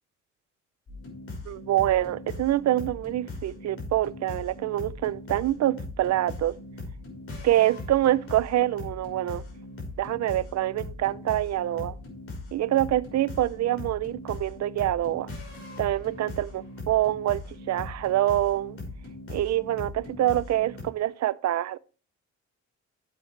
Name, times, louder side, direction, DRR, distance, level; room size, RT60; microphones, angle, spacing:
sound 1, 0.9-20.8, left 2 dB, 50° left, 5.8 m, -40 dB
voice 1, 1.4-6.6 7.4-9.4 10.0-12.0 12.5-15.3 15.8-18.8 19.3-21.8, right 13 dB, 65° right, 0.6 m, -26 dB
12.0 x 8.0 x 3.3 m
cardioid pair, 90°, 30 cm